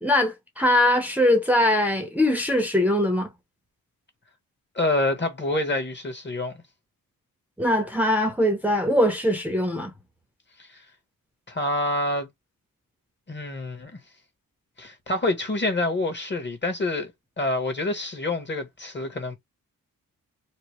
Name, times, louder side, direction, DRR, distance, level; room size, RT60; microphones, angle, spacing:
voice 1, 0.0-3.3 7.6-9.9, left 1 dB, 5° right, 0.7 m, -22 dB
voice 2, 4.7-6.6 10.6-10.8 11.5-12.3 13.3-14.0 14.8-17.1 17.4-19.3, left 2 dB, 30° left, 1.2 m, -27 dB
3.0 x 2.1 x 2.9 m
cardioid pair, 65°, 35 cm